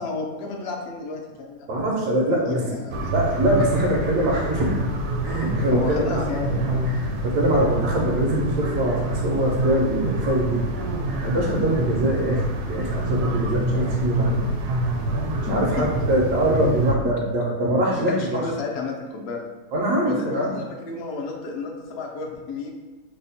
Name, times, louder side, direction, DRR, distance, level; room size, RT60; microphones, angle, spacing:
voice 1, 0.0-1.7 2.0-3.1 5.7-6.8 15.5-15.6 18.0-19.4 20.0-22.8, left 4 dB, 80° left, 0 dB, 0.5 m, -31 dB
voice 2, 1.7-2.7 3.1-4.8 5.2-6.3 6.9-10.6 11.2-14.4 15.4-18.4 19.7-20.5, right 1 dB, 90° right, -2 dB, 1.4 m, -23 dB
sound 1, 2.9-16.9, right 1 dB, 70° right, 0.9 m, -26 dB
3.3 x 2.1 x 4.0 m, 1.2 s
omnidirectional pair, 1.7 m